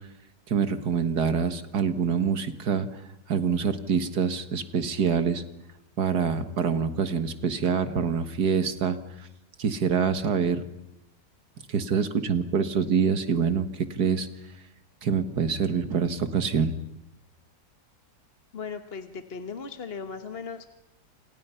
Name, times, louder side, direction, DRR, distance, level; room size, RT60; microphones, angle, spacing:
voice 1, 0.5-3.0 3.3-5.4 6.0-9.0 9.6-10.6 11.7-14.3 15.0-16.8, right 6 dB, 65° right, 10 dB, 2.1 m, -25 dB
voice 2, 18.5-20.7, left 5 dB, 40° left, 8 dB, 1.3 m, -37 dB
30.0 x 27.5 x 5.7 m, 0.91 s
omnidirectional pair, 1.8 m